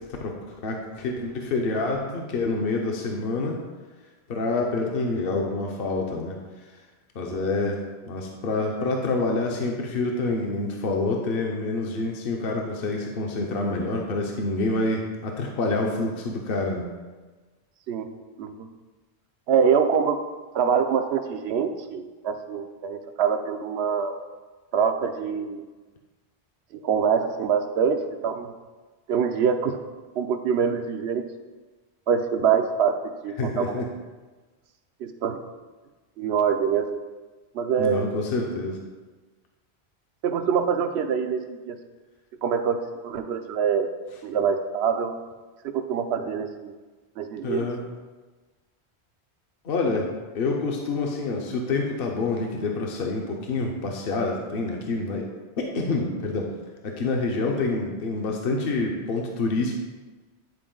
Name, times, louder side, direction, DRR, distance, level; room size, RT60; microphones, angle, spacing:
voice 1, 0.0-3.6 4.3-6.4 6.6-6.7 7.1-7.8 8.1-16.9 33.4-33.9 37.8-38.8 47.4-47.8 49.6-50.1 50.3-55.3 55.6-56.5 56.8-59.7, left 3 dB, 60° left, 1 dB, 0.9 m, -27 dB
voice 2, 19.5-20.2 20.5-24.1 24.7-25.6 26.8-28.5 29.1-29.8 30.2-31.2 32.1-33.0 33.2-33.8 35.0-35.4 36.2-36.9 37.5-38.2 40.2-41.8 42.4-43.9 44.2-45.1 45.6-46.7 47.2-47.8, right 7 dB, 75° right, 8 dB, 0.9 m, -24 dB
9.8 x 4.3 x 3.8 m, 1.3 s
omnidirectional pair, 1.1 m